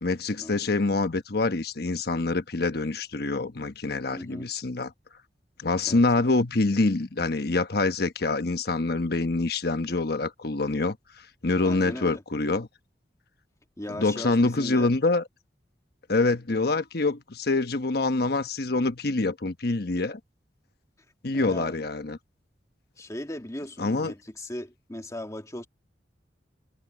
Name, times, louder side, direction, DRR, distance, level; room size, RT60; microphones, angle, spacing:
voice 1, 0.0-4.9 5.6-11.0 11.4-12.7 13.9-15.2 16.1-20.2 21.2-22.2 23.8-24.1, left 3 dB, 60° left, 1.1 m, -25 dB
voice 2, 4.1-4.5 5.9-6.0 11.6-12.2 13.8-14.9 21.3-21.8 23.0-25.7, left 1 dB, 20° left, 2.0 m, -37 dB
head